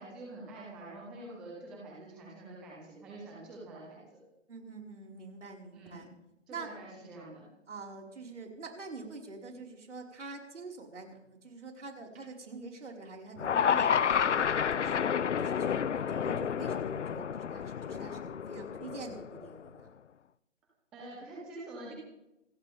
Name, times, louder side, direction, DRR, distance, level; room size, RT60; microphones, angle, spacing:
voice 1, 0.0-4.2 5.7-6.1 6.5-7.5 20.9-21.9, right 2 dB, ahead, -3 dB, 0.6 m, -46 dB
voice 2, 4.5-6.1 6.5-6.7 7.7-15.1 15.4-19.9, right 4 dB, 70° right, 0 dB, 5.2 m, -46 dB
sound 1, 13.4-19.6, left 7 dB, 70° left, 0.8 m, -30 dB
27.0 x 13.5 x 3.6 m, 0.87 s
hypercardioid pair, 155°, 38 cm